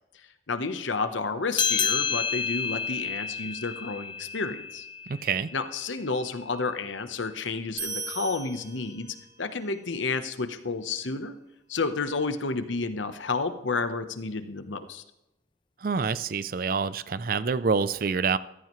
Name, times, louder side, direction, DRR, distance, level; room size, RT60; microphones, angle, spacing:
voice 1, 0.5-4.9 5.5-9.1 9.4-11.4 11.7-15.0, left 4 dB, 85° left, 10 dB, 1.0 m, -31 dB
sound 1, 1.5-6.4, left 6 dB, 25° left, 0.4 m, -30 dB
voice 2, 5.1-5.5 15.8-18.4, right 5 dB, 50° right, 16 dB, 0.4 m, -27 dB
sound 2, 7.8-9.4, right 4 dB, 65° right, 5.0 m, -37 dB
15.0 x 14.0 x 3.1 m, 0.89 s
head